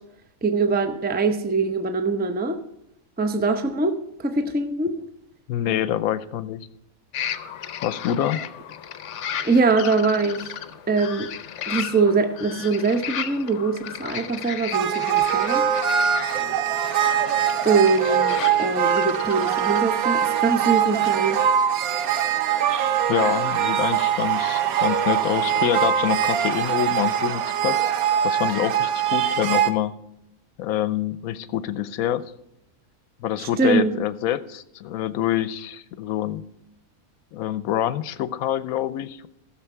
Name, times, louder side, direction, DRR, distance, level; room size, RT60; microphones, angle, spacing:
voice 1, 0.4-2.6 3.2-5.0 9.4-10.5 10.9-11.3 11.7-15.7 17.6-21.4 33.4-33.9, right 4 dB, 10° right, 7 dB, 0.5 m, -23 dB
voice 2, 5.5-6.7 7.8-8.4 23.1-27.8 28.2-30.0 30.6-32.2 33.2-36.4 37.3-39.3, left 11 dB, 90° left, 14 dB, 1.0 m, -26 dB
sound 1, 7.1-19.8, left 9 dB, 60° left, 1.0 m, -35 dB
sound 2, 14.7-29.7, right 9 dB, 85° right, 1.3 m, -22 dB
15.0 x 6.5 x 4.5 m, 0.82 s
omnidirectional pair, 1.5 m